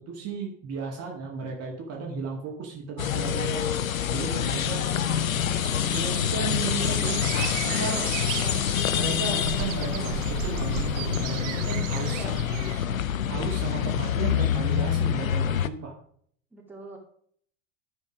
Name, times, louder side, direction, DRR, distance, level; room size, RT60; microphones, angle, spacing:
voice 1, 0.0-3.7 4.1-4.8 5.9-7.3 7.7-8.1 8.5-8.6 8.9-12.4 13.3-15.9, right 5 dB, 40° right, -1 dB, 1.9 m, -34 dB
sound 1, 3.0-15.7, left 9 dB, 90° left, 0.5 m, -26 dB
voice 2, 5.3-5.9 8.3-8.6 12.0-12.4 16.5-17.0, right 2 dB, 5° right, -2 dB, 2.4 m, -43 dB
sound 2, 5.6-12.8, right 13 dB, 65° right, 0.6 m, -36 dB
10.5 x 4.6 x 4.8 m, 0.62 s
hypercardioid pair, 85°, 40 cm